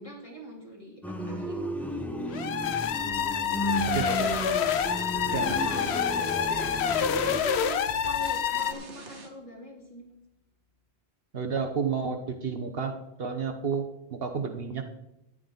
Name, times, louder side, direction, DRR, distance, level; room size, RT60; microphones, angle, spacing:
voice 1, 0.0-2.0 5.3-6.0 6.5-6.8 7.4-10.1, equal, 30° left, -3 dB, 3.3 m, -43 dB
sound 1, 1.0-7.4, right 1 dB, ahead, 0.8 m, -33 dB
sound 2, 2.3-8.7, left 8 dB, 75° left, 1.0 m, -27 dB
sound 3, 3.8-9.5, right 3 dB, 85° right, 1.7 m, -44 dB
voice 2, 3.9-4.5 5.3-5.6 11.3-14.8, right 5 dB, 60° right, 5 dB, 1.2 m, -31 dB
13.5 x 10.0 x 3.9 m, 0.87 s
omnidirectional pair, 1.1 m